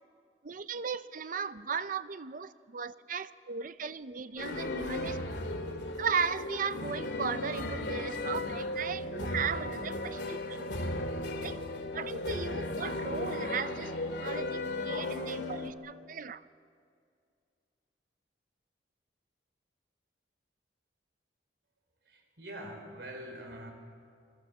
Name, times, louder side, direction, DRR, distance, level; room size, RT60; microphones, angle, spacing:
voice 1, 0.4-5.2 6.0-10.7 11.4-11.6 11.9-13.9 14.2-16.4, right 6 dB, 50° right, 0.6 m, -36 dB
sound 1, 4.4-15.7, left 2 dB, 75° left, 2.5 m, -35 dB
voice 2, 22.0-23.7, right 1 dB, 70° right, 4.8 m, -44 dB
28.0 x 22.5 x 7.1 m
head